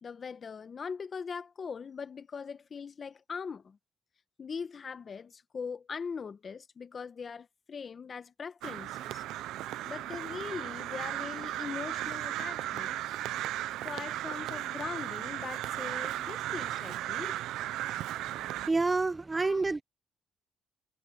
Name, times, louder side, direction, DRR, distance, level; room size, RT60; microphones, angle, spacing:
voice 1, 0.0-3.8 4.4-9.2 9.8-13.2 13.8-17.3 19.3-19.8, left 6 dB, 45° left, 1.3 m, -41 dB
Crow, 8.6-18.7, right 14 dB, 90° right, 0.6 m, -36 dB
voice 2, 18.2-19.8, right 3 dB, 25° right, 0.9 m, -29 dB
cardioid pair, 90°, 0 cm